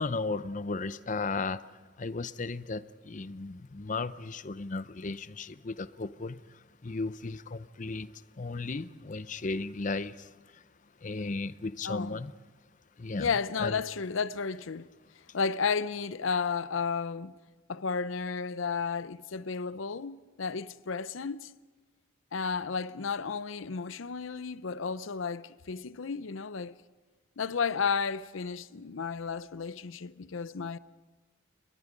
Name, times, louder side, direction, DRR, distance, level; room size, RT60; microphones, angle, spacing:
voice 1, 0.0-1.6 2.0-10.6 11.0-12.3 13.0-13.3 13.6-13.8, left 3 dB, 40° left, 0.6 m, -35 dB
voice 2, 11.8-12.2 13.2-14.9 15.3-17.3 17.7-21.5 22.3-26.7 27.4-30.8, left 5 dB, 75° left, 0.6 m, -33 dB
29.5 x 23.0 x 5.2 m
head